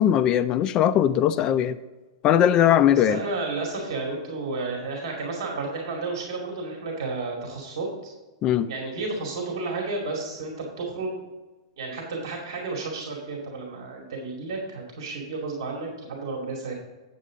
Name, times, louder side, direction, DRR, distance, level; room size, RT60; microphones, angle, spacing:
voice 1, 0.0-1.8 2.2-3.2 8.4-8.7, left 10 dB, 25° left, 13 dB, 0.3 m, -20 dB
voice 2, 3.0-8.1 8.7-11.2 11.8-16.8, right 3 dB, 60° right, 0 dB, 2.3 m, -32 dB
8.4 x 8.4 x 3.8 m, 1.2 s
supercardioid pair, 160°, 3 cm